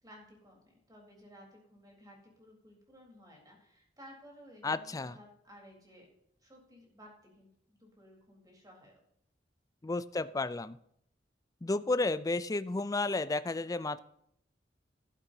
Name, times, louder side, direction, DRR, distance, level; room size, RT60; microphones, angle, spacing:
voice 1, 0.0-6.1 6.4-9.0, equal, 20° right, -1 dB, 3.9 m, -56 dB
voice 2, 4.6-5.1 9.8-10.8 11.6-14.0, left 2 dB, 20° left, 14 dB, 0.4 m, -32 dB
13.0 x 11.0 x 2.8 m, 0.72 s
head